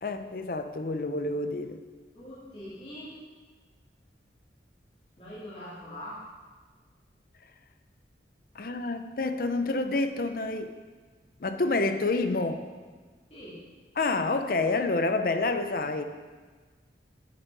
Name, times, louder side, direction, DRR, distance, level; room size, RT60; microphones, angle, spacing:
voice 1, 0.0-1.8 8.6-10.7 11.4-12.6 14.0-16.0, left 3 dB, 50° left, 9 dB, 0.5 m, -28 dB
voice 2, 2.1-3.2 5.2-6.2 13.3-13.6, equal, 30° left, -9 dB, 2.4 m, -42 dB
9.1 x 8.2 x 4.7 m, 1.4 s
head